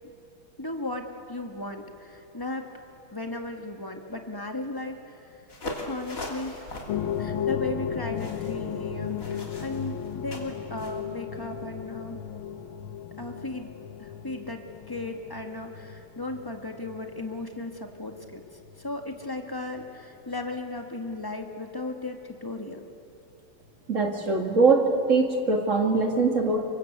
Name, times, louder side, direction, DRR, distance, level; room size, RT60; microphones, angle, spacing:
voice 1, 0.6-2.7 3.1-5.3 5.8-6.7 7.2-12.2 13.2-13.7 14.0-18.4 18.8-22.8, left 2 dB, 10° left, 4 dB, 1.6 m, -36 dB
sound 1, 5.5-11.0, left 1 dB, 40° left, 3.4 m, -40 dB
sound 2, 6.9-19.5 19.8-19.9 20.6-20.7, left 9 dB, 75° left, 1.7 m, -35 dB
voice 2, 23.9-26.6, right 3 dB, 35° right, 3 dB, 2.5 m, -22 dB
27.5 x 23.5 x 8.1 m, 3.0 s
omnidirectional pair, 2.4 m